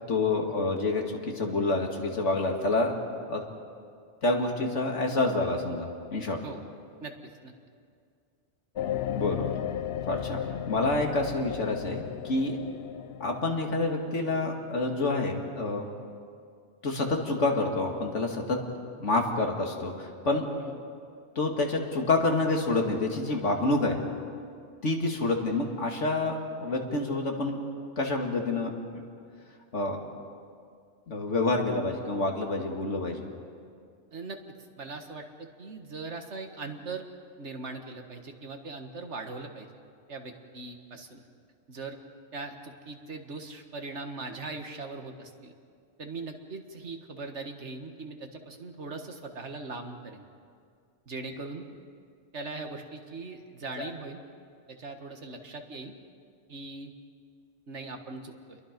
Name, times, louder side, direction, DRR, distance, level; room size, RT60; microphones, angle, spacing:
voice 1, 0.1-2.9 3.3-3.4 4.2-6.4 9.1-9.5 10.1-10.4 10.7-12.6 13.2-15.9 16.8-18.6 19.0-20.5 21.4-24.0 24.8-27.6 28.0-29.0 29.7-30.0 31.1-33.3 51.3-51.4 53.8-53.9, left 2 dB, 90° left, 1 dB, 2.6 m, -28 dB
sound 1, 8.7-16.2, left 10 dB, 65° left, 0.9 m, -36 dB
voice 2, 34.8-37.0 37.4-39.7 40.1-41.2 41.7-42.0 42.3-45.5 46.0-50.3 51.1-51.6 52.3-54.2 54.7-55.9 56.5-56.9 57.7-58.6, right 3 dB, 75° right, 5 dB, 2.0 m, -40 dB
29.5 x 22.5 x 5.3 m, 2.2 s
omnidirectional pair, 1.2 m